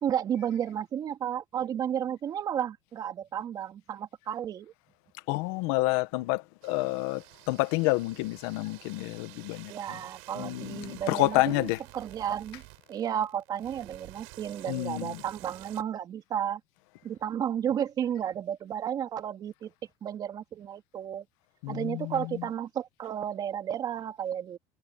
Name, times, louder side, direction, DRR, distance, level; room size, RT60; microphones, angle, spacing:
voice 1, 0.0-4.7 9.6-12.6 12.9-16.6 17.0-19.7 20.0-21.3 21.7-24.6, right 9 dB, 30° right, 3.6 m, -32 dB
voice 2, 5.3-10.0 10.3-11.8 14.7-15.2 21.6-22.5, left 21 dB, 85° left, 1.3 m, -29 dB
sound 1, 6.6-15.8, right 34 dB, 90° right, 7.6 m, -51 dB
cardioid pair, 170°, 13 cm